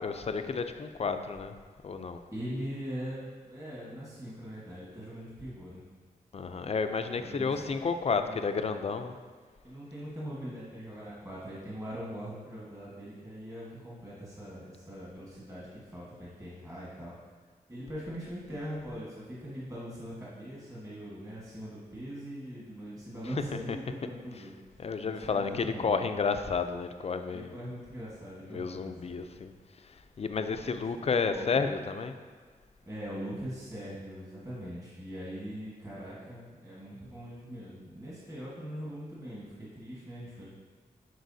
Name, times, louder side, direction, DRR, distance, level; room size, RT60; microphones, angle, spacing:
voice 1, 0.0-1.5 1.8-2.2 6.3-9.2 23.7-23.8 24.8-27.6 28.5-29.5 30.2-32.1, left 5 dB, 40° left, 8 dB, 0.4 m, -31 dB
voice 2, 2.3-5.8 7.2-7.8 8.2-8.6 8.9-9.1 9.6-17.2 17.7-26.0 27.3-29.2 30.6-31.7 32.9-40.5, equal, 20° right, -7 dB, 1.5 m, -42 dB
10.5 x 4.4 x 2.7 m, 1.5 s
wide cardioid pair, 100°, 16 cm